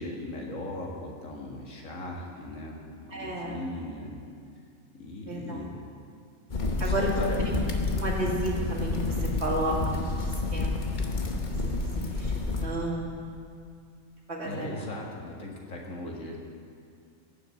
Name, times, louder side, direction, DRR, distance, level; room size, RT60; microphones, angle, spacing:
voice 1, 0.0-4.2 5.0-5.8 6.7-7.4 14.4-16.4, left 1 dB, 75° left, -1 dB, 2.4 m, -38 dB
voice 2, 3.1-3.6 5.3-5.6 6.8-7.1 7.5-7.6 8.0-9.8 10.2-11.0 11.4-11.8 12.1-12.3 12.6-13.1 14.3-14.9, right 1 dB, 55° right, -3 dB, 2.5 m, -32 dB
sound 1, 6.5-12.6, left 3 dB, 40° left, 1.1 m, -29 dB
17.5 x 6.5 x 7.7 m, 2.4 s
omnidirectional pair, 1.4 m